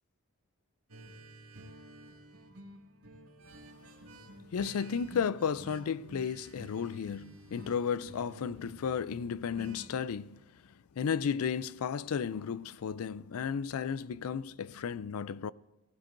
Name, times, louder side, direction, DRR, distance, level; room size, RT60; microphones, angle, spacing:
sound 1, 0.9-9.9, equal, 80° right, 2.1 m, -51 dB
voice 1, 4.5-10.4 11.0-15.5, left 7 dB, 75° left, 0.4 m, -33 dB
18.0 x 16.5 x 2.6 m
head